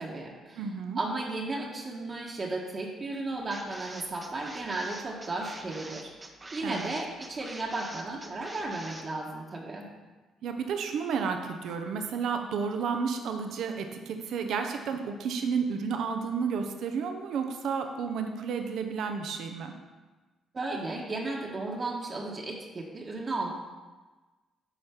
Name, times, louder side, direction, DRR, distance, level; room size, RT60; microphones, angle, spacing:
voice 1, 0.0-0.6 0.9-6.1 6.5-9.9 20.5-23.5, right 2 dB, 35° right, -1 dB, 1.4 m, -34 dB
voice 2, 0.6-1.0 6.6-6.9 10.4-19.7, right 6 dB, 75° right, 5 dB, 0.8 m, -31 dB
sound 1, 3.5-9.0, right 2 dB, 20° right, 0.9 m, -45 dB
8.3 x 4.5 x 5.9 m, 1.3 s
cardioid pair, 90°, 0 cm